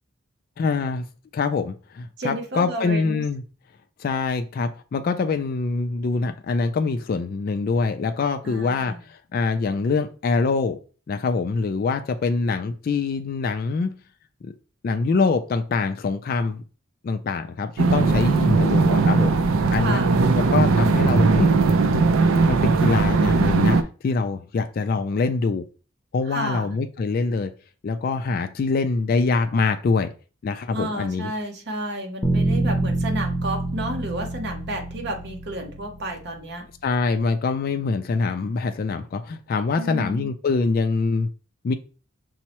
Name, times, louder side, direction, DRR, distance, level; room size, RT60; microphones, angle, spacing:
voice 1, 0.6-1.1 1.3-3.4 4.0-10.8 11.1-13.9 14.4-14.5 14.8-16.6 17.0-19.4 19.7-20.0 20.4-21.5 21.8-22.1 22.5-23.8 24.0-25.6 26.1-27.5 27.8-30.1 30.4-31.3 36.8-41.3 41.6-41.7, left 4 dB, 45° left, 0.3 m, -24 dB
voice 2, 2.2-3.2 8.4-9.0 19.7-20.2 26.3-26.7 30.7-36.7 39.8-40.3, right 1 dB, 55° right, 0.8 m, -31 dB
sound 1, 17.8-23.8, right 4 dB, 80° right, 0.4 m, -19 dB
sound 2, 32.2-36.3, right 2 dB, 15° left, 0.7 m, -26 dB
5.4 x 2.0 x 2.9 m
head